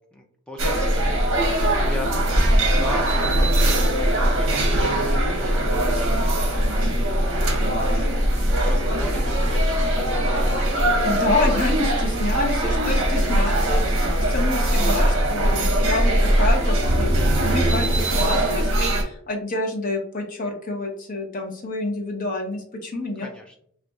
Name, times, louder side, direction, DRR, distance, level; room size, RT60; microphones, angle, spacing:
voice 1, 0.1-10.9 16.1-16.7 23.2-23.5, equal, 5° left, 1 dB, 0.3 m, -38 dB
sound 1, 0.6-19.0, right 1 dB, 65° right, 0.8 m, -21 dB
voice 2, 11.0-23.3, left 2 dB, 40° left, 1 dB, 0.6 m, -28 dB
3.9 x 2.3 x 2.3 m, 0.63 s
head